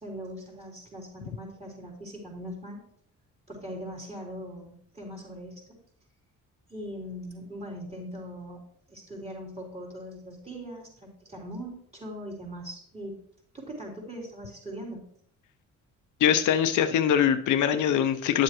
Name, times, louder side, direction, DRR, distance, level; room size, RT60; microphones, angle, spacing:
voice 1, 0.0-2.8 3.5-5.7 6.7-8.6 8.9-13.2 13.5-15.1, equal, 20° right, -4 dB, 4.1 m, -40 dB
voice 2, 16.2-18.4, left 9 dB, 80° left, 8 dB, 0.7 m, -23 dB
10.0 x 7.6 x 3.1 m, 0.66 s
cardioid pair, 90°, 30 cm